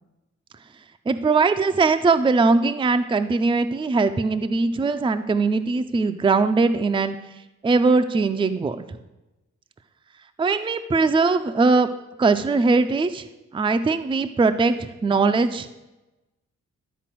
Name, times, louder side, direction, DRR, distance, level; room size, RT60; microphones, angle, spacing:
voice 1, 1.1-7.2 7.6-8.8 10.4-11.9 12.2-13.2 13.5-14.7 15.0-15.7, right 4 dB, 15° right, 8 dB, 0.4 m, -20 dB
12.0 x 4.5 x 7.5 m, 1.0 s
wide cardioid pair, 140°, 29 cm